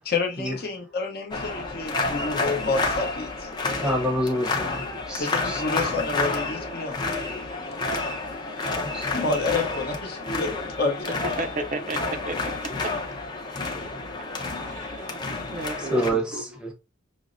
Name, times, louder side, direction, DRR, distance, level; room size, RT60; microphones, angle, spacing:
voice 1, 0.0-3.5 5.2-7.0 9.1-11.2 11.6-11.7, left 3 dB, 50° left, 0.8 m, -29 dB
sound 1, 1.3-16.1, left 3 dB, 20° left, 0.5 m, -30 dB
voice 2, 3.8-5.6 8.9-9.1 15.9-16.7, equal, 5° right, 0.8 m, -27 dB
voice 3, 11.4-12.7 14.6-15.1 15.5-16.6, right 2 dB, 40° right, 0.5 m, -34 dB
6.0 x 2.0 x 2.5 m
head